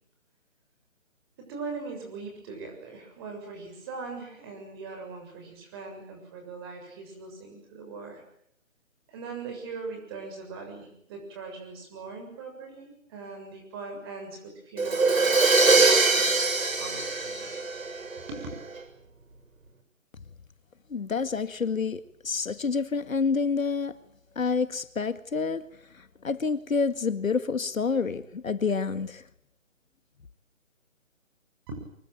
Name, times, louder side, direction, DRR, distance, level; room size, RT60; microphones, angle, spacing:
voice 1, 1.4-8.2 9.1-16.3 16.8-17.1 18.3-18.5 31.7-31.8, right 4 dB, 20° right, 7.1 m, -40 dB
Crash cymbal, 14.8-18.5, right 3 dB, 80° right, 6.9 m, -22 dB
voice 2, 20.9-24.0 24.4-25.7 25.9-29.2, left 5 dB, 80° left, 2.1 m, -28 dB
25.0 x 22.5 x 9.0 m
hypercardioid pair, 170°, 40 cm